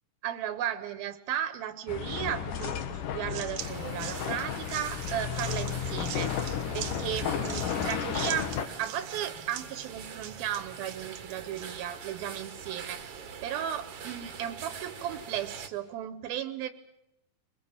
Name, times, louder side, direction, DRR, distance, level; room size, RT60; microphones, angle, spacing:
voice 1, 0.2-6.3 6.7-8.5 8.8-16.7, right 11 dB, 85° right, 11 dB, 2.9 m, -35 dB
sound 1, 1.9-8.7, left 8 dB, 70° left, 2.8 m, -33 dB
sound 2, 2.6-11.8, right 10 dB, 65° right, 2.2 m, -43 dB
sound 3, 3.6-15.7, right 6 dB, 50° right, 2.2 m, -44 dB
23.5 x 21.5 x 8.8 m, 0.89 s
omnidirectional pair, 4.2 m